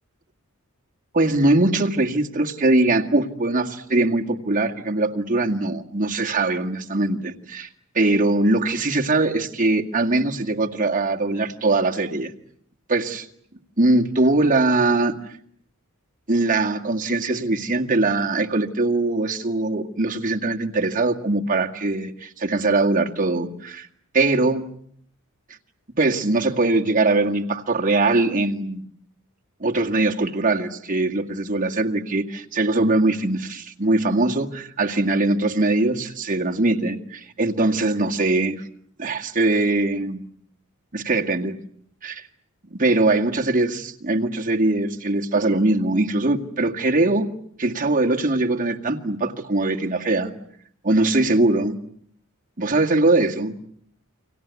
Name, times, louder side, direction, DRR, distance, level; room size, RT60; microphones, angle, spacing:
voice 1, 1.1-7.7 7.9-12.3 12.9-13.3 13.8-15.2 16.3-23.9 24.1-24.7 26.0-28.8 29.6-38.6 39.0-40.2 40.9-41.5 42.0-42.3 42.7-47.3 47.6-50.3 50.8-51.8 52.6-53.5, right 2 dB, 40° right, 2 dB, 2.0 m, -21 dB
30.0 x 24.0 x 8.3 m, 0.66 s
head